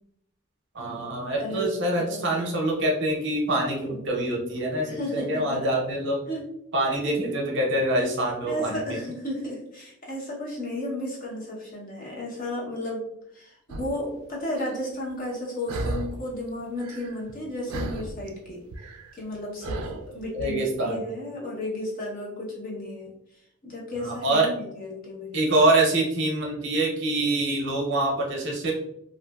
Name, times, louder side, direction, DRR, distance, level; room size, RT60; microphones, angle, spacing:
voice 1, 0.7-6.2 6.7-8.8 20.3-21.0 24.0-24.5 25.3-28.7, right 1 dB, 55° right, -1 dB, 0.6 m, -25 dB
voice 2, 1.4-2.4 4.9-5.6 6.3-6.5 8.5-13.0 13.3-18.6 19.1-23.1 23.6-25.4, left 1 dB, 40° left, -3 dB, 0.7 m, -33 dB
sound 1, 13.7-14.0 14.6-14.8 15.7-16.3 16.6-17.4 17.7-20.5, right 2 dB, 85° right, 0.3 m, -35 dB
2.7 x 2.5 x 2.2 m, 0.78 s
head